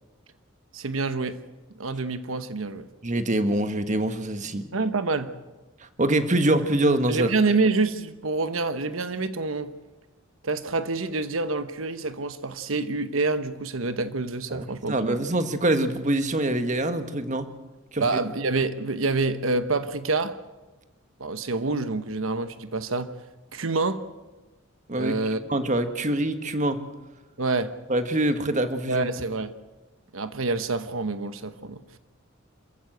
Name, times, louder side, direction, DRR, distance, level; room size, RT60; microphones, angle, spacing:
voice 1, 0.7-1.4 1.8-2.9 4.7-5.3 7.1-9.7 10.4-15.2 18.0-20.4 21.2-23.1 23.5-24.0 25.0-25.7 27.4-27.7 28.9-29.5 30.1-32.0, right 3 dB, 85° right, 1.1 m, -27 dB
voice 2, 3.0-4.7 6.0-7.3 14.5-17.5 17.9-18.2 24.9-25.1 25.5-26.8 27.9-29.1, right 1 dB, 40° right, 1.5 m, -24 dB
27.5 x 15.0 x 7.9 m
head